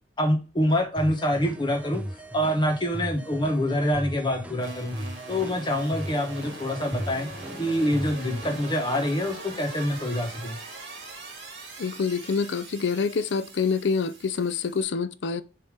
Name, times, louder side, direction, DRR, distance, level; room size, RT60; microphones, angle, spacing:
voice 1, 0.2-2.0 2.3-4.9 5.3-7.3 7.6-10.6, equal, 25° left, 1.2 m, -26 dB
sound 1, 1.0-8.8, equal, 5° right, 0.5 m, -38 dB
sound 2, 4.6-14.8, right 2 dB, 55° right, 2.1 m, -42 dB
voice 2, 11.8-15.4, left 5 dB, 65° left, 0.4 m, -26 dB
6.9 x 2.9 x 5.0 m
head